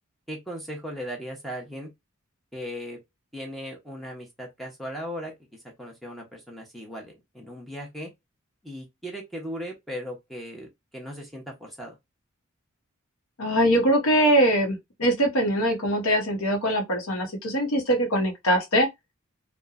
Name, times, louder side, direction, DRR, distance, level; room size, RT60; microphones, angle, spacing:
voice 1, 0.3-1.9 2.5-3.0 3.3-8.1 8.6-12.0, equal, ahead, 0.7 m, -37 dB
voice 2, 13.4-18.9, right 1 dB, 80° left, 0.8 m, -22 dB
2.9 x 2.1 x 2.4 m
head